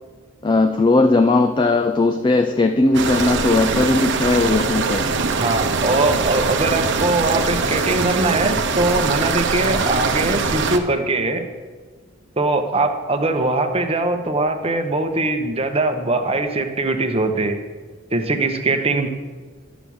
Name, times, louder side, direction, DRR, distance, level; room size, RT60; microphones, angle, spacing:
voice 1, 0.4-5.1, left 2 dB, 25° left, 8 dB, 0.4 m, -18 dB
sound 1, 2.9-10.8, right 4 dB, 65° right, 0.8 m, -22 dB
voice 2, 5.4-11.4 12.4-17.6 18.1-19.1, right 2 dB, 30° right, 6 dB, 1.0 m, -21 dB
12.0 x 6.2 x 7.0 m, 1.4 s
head